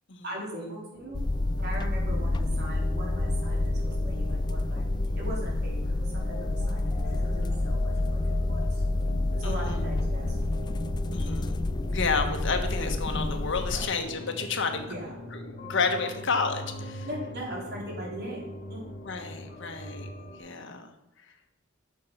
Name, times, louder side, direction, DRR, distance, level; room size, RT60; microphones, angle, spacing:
voice 1, 0.2-1.2 1.6-4.9 5.2-8.8 9.3-10.4 13.7-14.0 14.8-15.2 17.0-18.4 18.7-18.8, equal, 55° right, -3 dB, 3.9 m, -40 dB
sound 1, 0.9-20.4, equal, 40° left, 3.0 m, -41 dB
sound 2, 1.1-13.8, left 2 dB, 20° left, 0.3 m, -28 dB
voice 2, 9.4-9.8 11.1-11.6 11.9-14.8 15.3-17.1 19.0-20.1 20.4-20.9, left 4 dB, 65° left, 5 dB, 1.4 m, -30 dB
12.0 x 6.6 x 5.7 m, 0.93 s
head